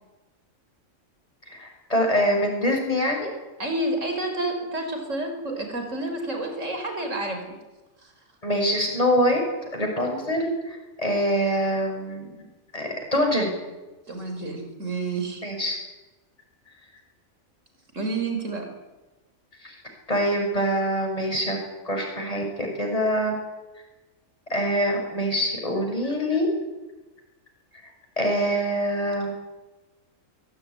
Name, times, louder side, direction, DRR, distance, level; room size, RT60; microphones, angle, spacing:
voice 1, 1.5-3.3 8.4-9.4 9.7-12.3 12.7-13.5 15.4-15.8 19.6-21.6 21.8-23.3 24.5-26.5 28.2-29.3, equal, 25° left, 2 dB, 6.5 m, -24 dB
voice 2, 3.6-7.6 14.1-15.4 17.9-18.7, right 2 dB, 65° right, 5 dB, 5.2 m, -29 dB
22.5 x 16.5 x 10.0 m, 1.1 s
omnidirectional pair, 1.4 m